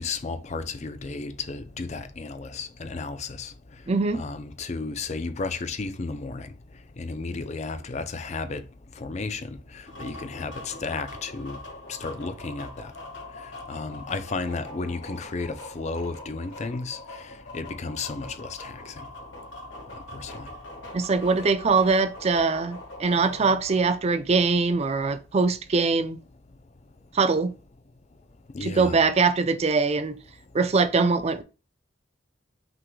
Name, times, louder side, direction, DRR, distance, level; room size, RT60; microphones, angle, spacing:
voice 1, 0.0-20.9 26.8-27.1 28.1-28.2 28.5-29.0 30.4-30.6, left 3 dB, 35° left, 0.5 m, -34 dB
voice 2, 3.9-4.2 20.9-26.2 27.1-27.5 28.6-30.2 30.5-31.4, right 4 dB, 35° right, 0.4 m, -22 dB
sound 1, 9.8-24.0, left 1 dB, 85° left, 1.7 m, -42 dB
5.8 x 3.7 x 2.3 m
head